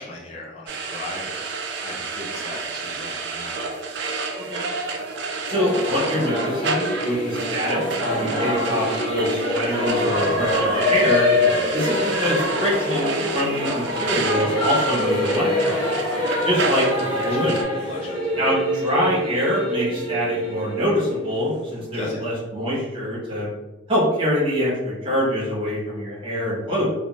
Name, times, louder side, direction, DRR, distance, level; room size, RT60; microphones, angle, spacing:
voice 1, 0.0-1.5 1.8-3.6 11.4-11.8 16.6-16.8 17.2-17.5 17.8-18.6 21.9-22.3, left 2 dB, 30° left, -3 dB, 0.3 m, -37 dB
sound 1, 0.7-17.6, right 4 dB, 60° right, 0.3 m, -30 dB
Singing / Musical instrument, 5.5-21.8, left 1 dB, 5° left, 1.2 m, -25 dB
voice 2, 5.5-11.3 11.7-15.8 16.4-16.8 17.2-17.6 18.4-18.6 18.8-23.5 23.9-26.9, equal, 25° right, -7 dB, 1.0 m, -24 dB
Dog, 9.8-15.1, equal, 70° left, 0.9 m, -42 dB
2.4 x 2.1 x 3.0 m, 1.1 s
head